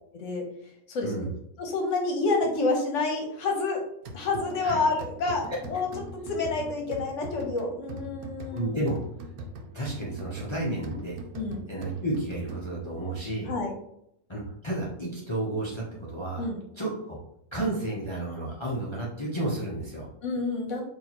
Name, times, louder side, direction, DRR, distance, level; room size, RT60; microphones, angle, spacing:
voice 1, 0.1-0.4 0.9-1.3 1.6-3.8 4.1-8.8 11.3-11.6 13.5-13.7 16.4-16.7 20.2-20.9, left 3 dB, 60° left, 2 dB, 1.1 m, -28 dB
sound 1, 4.1-12.9, right 1 dB, 85° right, 1.0 m, -42 dB
voice 2, 8.5-9.0 9.7-11.2 11.7-13.5 14.3-16.5 16.8-17.2 17.5-20.1, right 1 dB, 40° left, -5 dB, 0.4 m, -31 dB
4.1 x 2.8 x 2.9 m, 0.76 s
omnidirectional pair, 1.5 m